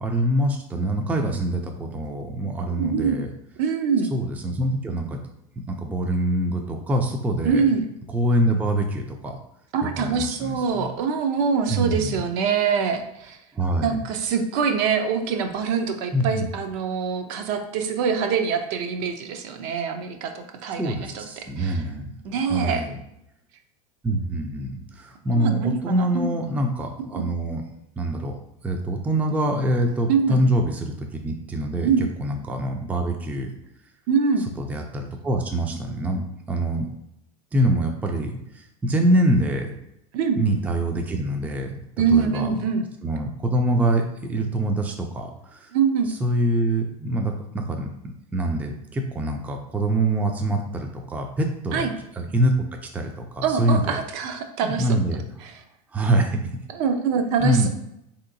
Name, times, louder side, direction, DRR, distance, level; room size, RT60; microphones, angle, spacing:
voice 1, 0.0-3.3 4.1-5.2 5.7-7.6 8.1-9.4 9.8-10.9 11.7-12.2 13.5-14.0 16.1-16.5 20.8-22.1 22.4-23.0 24.0-27.6 28.0-28.4 28.6-33.5 34.6-36.9 37.5-39.7 40.4-41.8 42.1-42.5 43.0-45.7 46.1-47.9 48.3-51.9 52.2-52.5 52.9-54.0 54.6-55.2 55.9-56.4 57.4-57.7, right 1 dB, 10° right, 3 dB, 0.4 m, -25 dB
voice 2, 2.7-3.2 3.6-4.1 7.4-7.9 9.7-13.4 13.8-21.2 21.6-21.8 22.2-22.8 25.3-26.3 27.1-27.3 30.1-30.4 31.8-32.0 34.1-34.4 40.1-40.4 42.0-42.8 45.7-46.1 51.7-51.9 53.4-54.9 55.4-55.5 56.7-57.7, right 6 dB, 60° right, 6 dB, 0.5 m, -24 dB
3.2 x 2.8 x 2.6 m, 0.81 s
supercardioid pair, 110°, 19 cm